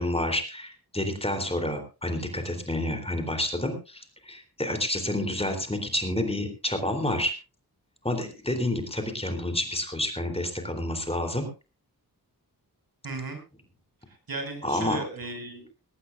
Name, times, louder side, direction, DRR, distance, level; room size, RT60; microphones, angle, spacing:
voice 1, 0.0-7.3 8.0-11.5 14.6-15.0, left 1 dB, 15° left, 5 dB, 3.2 m, -29 dB
voice 2, 13.0-13.4 14.1-15.8, right 3 dB, 65° right, 5 dB, 5.5 m, -36 dB
19.0 x 17.0 x 2.5 m, 0.31 s
wide cardioid pair, 110°, 38 cm